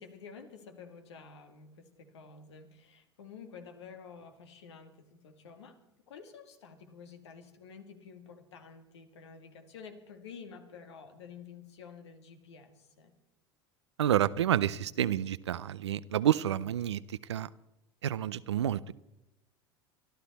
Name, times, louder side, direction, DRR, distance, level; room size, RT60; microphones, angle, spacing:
voice 1, 0.0-13.1, left 6 dB, 80° left, 6 dB, 2.0 m, -50 dB
voice 2, 14.0-17.0 17.3-17.5 18.0-18.9, right 11 dB, 85° right, 17 dB, 0.6 m, -29 dB
24.5 x 12.5 x 4.2 m, 0.91 s
hypercardioid pair, 80°, 14 cm